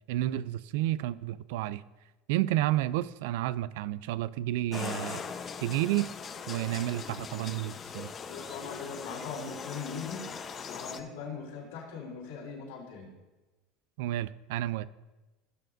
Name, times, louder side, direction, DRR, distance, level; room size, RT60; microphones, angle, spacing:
voice 1, 0.1-1.8 2.3-5.2 5.6-6.1 6.5-8.1 14.0-14.9, right 14 dB, 75° right, 18 dB, 0.3 m, -31 dB
sound 1, 4.7-11.0, left 6 dB, 35° left, 0.8 m, -40 dB
voice 2, 8.3-10.2 10.7-13.1, left 5 dB, 80° left, -4 dB, 3.6 m, -40 dB
18.0 x 6.8 x 2.6 m, 1.1 s
hypercardioid pair, 90°, 0 cm